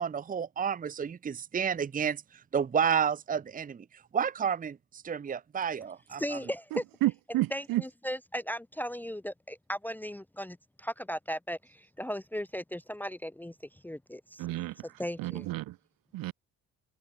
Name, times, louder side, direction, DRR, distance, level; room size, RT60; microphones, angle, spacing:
voice 1, 0.0-2.2 2.5-3.8 4.1-6.4, right 7 dB, 25° right, 1.1 m, -30 dB
voice 2, 6.2-6.8 7.3-14.5 14.8-15.5, equal, 5° left, 0.9 m, -37 dB
voice 3, 6.7-7.8 14.4-14.7 15.2-15.7 16.1-16.3, right 17 dB, 70° right, 3.2 m, -31 dB
cardioid pair, 135°, 35 cm